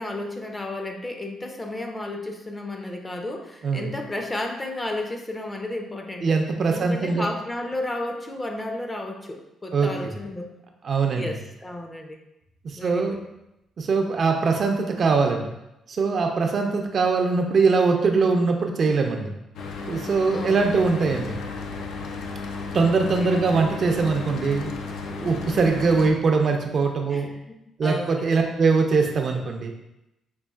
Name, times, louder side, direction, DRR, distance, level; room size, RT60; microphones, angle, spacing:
voice 1, 0.0-6.4 6.7-10.5 11.2-12.2 12.8-13.2 20.3-20.6 23.2-23.3 27.1-27.6 27.8-28.3, left 1 dB, 20° left, 3 dB, 0.5 m, -33 dB
voice 2, 6.2-7.3 9.7-10.1 10.8-11.4 12.6-13.2 13.8-15.5 15.9-19.4 19.9-21.4 22.7-24.7 25.1-27.3 27.8-29.7, right 4 dB, 50° right, 3 dB, 0.5 m, -22 dB
Mechanical fan, 19.5-26.1, left 4 dB, 80° left, 0.4 m, -34 dB
5.3 x 2.4 x 2.3 m, 0.88 s
cardioid pair, 95°, 0 cm